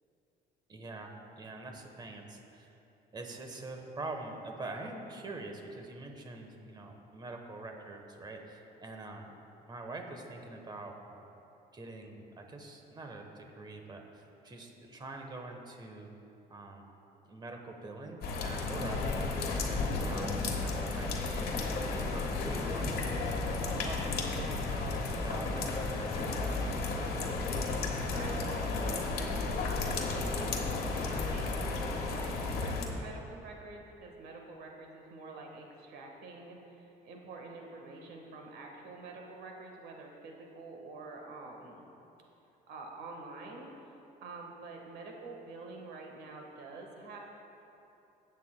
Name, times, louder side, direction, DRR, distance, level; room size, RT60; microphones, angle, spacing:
voice 1, 0.7-2.7 3.1-9.3 9.6-11.3 11.7-16.1 16.5-16.9 17.3-21.6 22.1-25.7 26.0-27.1, right 2 dB, 25° right, 3 dB, 1.1 m, -45 dB
sound 1, 18.2-32.9, left 3 dB, 65° left, 1.4 m, -33 dB
voice 2, 28.1-41.9 42.7-43.9 44.2-47.2, right 3 dB, 75° right, 1 dB, 1.4 m, -47 dB
17.0 x 8.4 x 2.2 m, 2.9 s
cardioid pair, 110°, 17 cm